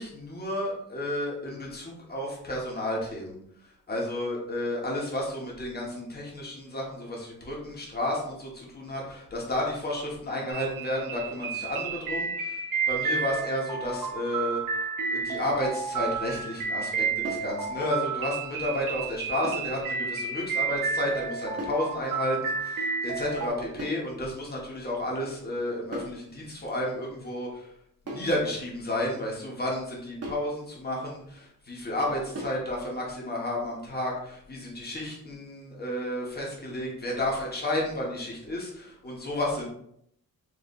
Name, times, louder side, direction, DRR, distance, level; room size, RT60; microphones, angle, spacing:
voice 1, 0.0-3.4 3.6-14.8 15.1-27.7 28.0-39.7, left 1 dB, 25° left, -3 dB, 1.6 m, -32 dB
sound 1, 10.5-23.5, right 5 dB, 65° right, 1.0 m, -31 dB
sound 2, 17.2-17.6 19.4-19.7 21.6-21.9 23.8-24.1 25.9-26.2 28.1-28.4 30.2-30.5 32.4-32.7, right 1 dB, 45° right, 1.1 m, -37 dB
4.8 x 3.3 x 2.7 m, 0.71 s
cardioid pair, 95°, 35 cm